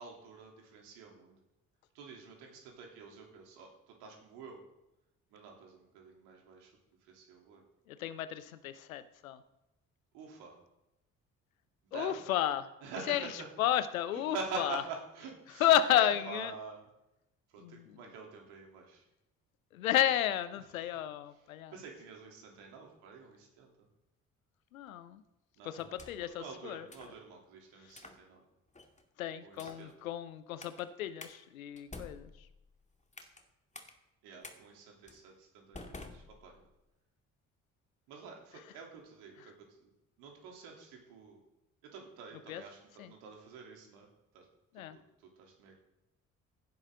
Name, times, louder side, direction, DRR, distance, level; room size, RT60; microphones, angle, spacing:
voice 1, 0.0-1.4 1.9-4.6 5.3-6.7 7.0-7.6 10.1-10.6 11.8-12.2 12.8-13.5 14.1-16.9 17.5-19.0 20.6-20.9 21.3-23.9 25.6-25.8 26.2-28.4 29.4-29.9 34.2-36.7 38.1-39.9 40.2-41.4 41.8-44.1 44.3-44.5 44.7-45.8, right 5 dB, 70° right, 0 dB, 3.4 m, -47 dB
voice 2, 7.9-9.4 11.9-12.7 13.1-13.2 13.6-14.8 15.6-16.5 17.6-17.9 19.7-21.7 24.7-25.2 25.6-26.9 29.2-32.3 42.5-42.6 43.0-43.1 44.7-45.0, left 11 dB, 80° left, 14 dB, 0.9 m, -32 dB
sound 1, 25.8-26.4 26.9-27.2 27.9-28.2 28.7-29.0 29.5-29.9 30.6-30.8 31.2-31.3 31.8-33.4 33.7-33.9 34.4-34.6 35.1-35.2 35.7-36.8, left 2 dB, 15° left, 2.3 m, -50 dB
16.5 x 10.5 x 3.9 m, 0.92 s
figure-of-eight pair, 45°, 41 cm